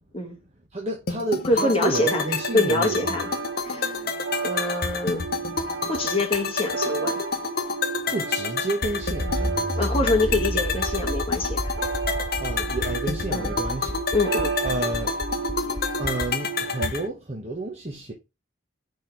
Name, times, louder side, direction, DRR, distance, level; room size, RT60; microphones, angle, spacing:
voice 1, 0.7-3.0 8.1-9.8 12.4-14.0 14.6-15.2 15.6-18.1, right 2 dB, 30° right, 1.1 m, -30 dB
sound 1, 1.1-17.1, left 5 dB, 50° left, 0.7 m, -29 dB
voice 2, 1.4-3.3 3.6-4.1 4.4-5.3 5.9-7.2 9.7-11.7 13.3-13.5 14.1-14.5, left 2 dB, 25° left, 1.4 m, -25 dB
sound 2, 1.9-16.9, right 5 dB, 50° right, 1.0 m, -33 dB
Accelerating revving vroom, 9.0-16.3, equal, ahead, 0.5 m, -31 dB
5.2 x 4.1 x 4.5 m
head